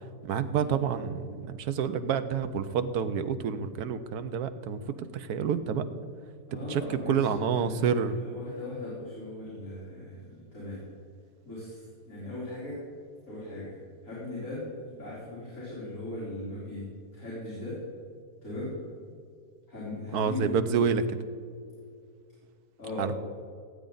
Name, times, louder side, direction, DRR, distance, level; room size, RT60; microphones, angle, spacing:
voice 1, 0.2-5.9 6.5-8.2 20.1-21.2 23.0-23.1, right 7 dB, 80° right, 10 dB, 1.2 m, -28 dB
voice 2, 6.5-7.3 7.5-7.9 8.2-10.8 11.4-12.8 13.3-16.8 17.1-17.8 18.4-18.7 19.7-20.6 22.8-23.1, left 2 dB, 55° left, -9 dB, 3.8 m, -38 dB
17.0 x 8.6 x 3.9 m, 2.2 s
omnidirectional pair, 1.7 m